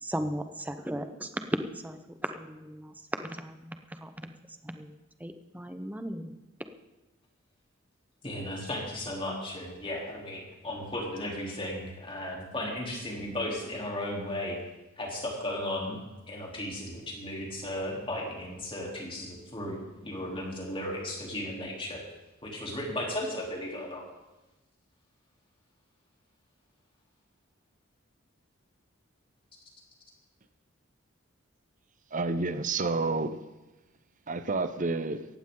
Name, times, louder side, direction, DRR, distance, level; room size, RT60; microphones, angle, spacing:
voice 1, 0.0-2.9 3.2-4.3 4.6-4.9 5.2-6.3, right 1 dB, 10° right, 0.9 m, -36 dB
voice 2, 8.2-14.6 15.0-16.0 16.3-22.0 22.4-24.0, left 1 dB, 25° left, 3.5 m, -35 dB
voice 3, 32.1-33.4 34.3-35.3, right 3 dB, 40° right, 0.7 m, -29 dB
18.0 x 15.0 x 3.9 m
head